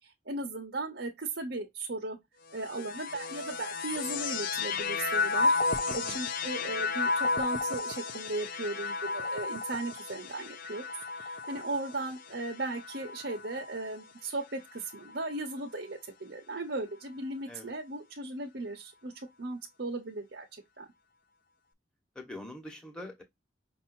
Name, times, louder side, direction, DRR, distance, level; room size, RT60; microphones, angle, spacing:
voice 1, 0.0-2.2 2.5-10.9 11.1-19.1 19.4-20.5 20.8-20.9, right 2 dB, 65° right, 1.1 m, -37 dB
sound 1, 2.5-14.0 14.8-15.5, left 4 dB, 50° left, 0.5 m, -33 dB
voice 2, 5.9-6.2 17.5-17.7 22.1-23.2, left 1 dB, 5° left, 1.4 m, -44 dB
5.6 x 2.7 x 2.6 m
head